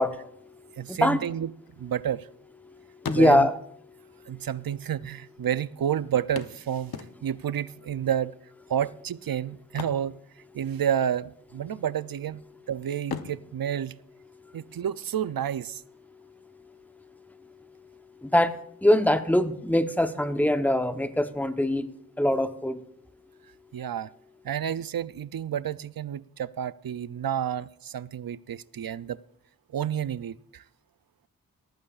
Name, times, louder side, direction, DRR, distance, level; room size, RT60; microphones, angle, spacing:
voice 1, 0.0-1.2 2.6-3.5 3.9-4.5 14.4-14.6 16.6-16.7 17.4-17.9 18.2-21.9 22.2-22.8, left 1 dB, 5° left, 9 dB, 0.8 m, -24 dB
voice 2, 0.8-1.5 1.8-2.3 3.1-3.5 4.3-6.9 7.2-8.3 8.7-10.2 10.5-12.4 12.7-14.0 14.5-15.8 23.7-24.1 24.4-29.2 29.7-30.6, right 9 dB, 70° right, 17 dB, 0.5 m, -30 dB
sound 1, 1.6-2.6 2.9-3.8 4.7-4.8 5.0-5.1 6.4-7.5 9.6-10.9 11.2-11.4 11.9-12.5 13.0-14.8 16.8-16.9 17.3-17.4, left 6 dB, 85° left, 0.8 m, -40 dB
18.0 x 14.0 x 2.4 m, 0.74 s
wide cardioid pair, 80°, 36 cm